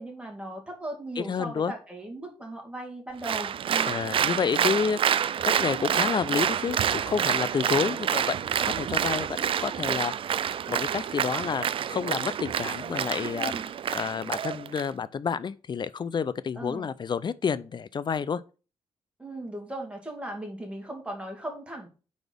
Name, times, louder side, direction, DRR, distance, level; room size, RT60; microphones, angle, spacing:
voice 1, 0.0-4.0 13.2-13.7 16.6-16.9 19.2-21.9, right 1 dB, 10° right, 2.2 m, -38 dB
voice 2, 1.2-1.7 3.9-10.1 10.7-13.5 13.9-18.4, left 6 dB, 45° left, 0.5 m, -29 dB
Applause, 3.2-14.9, right 9 dB, 55° right, 0.4 m, -28 dB
4.5 x 4.2 x 5.2 m
cardioid pair, 70°, 11 cm